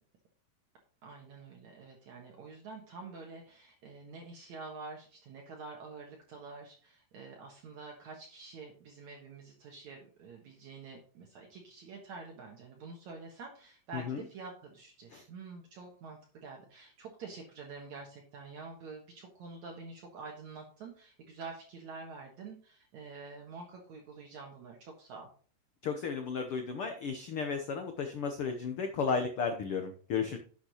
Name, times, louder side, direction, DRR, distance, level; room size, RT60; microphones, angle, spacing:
voice 1, 1.0-25.3, right 4 dB, 60° right, 0 dB, 2.6 m, -47 dB
voice 2, 13.9-14.2 15.1-15.2 25.8-30.4, left 5 dB, 90° left, 6 dB, 1.2 m, -34 dB
11.0 x 7.4 x 3.0 m, 0.43 s
omnidirectional pair, 4.0 m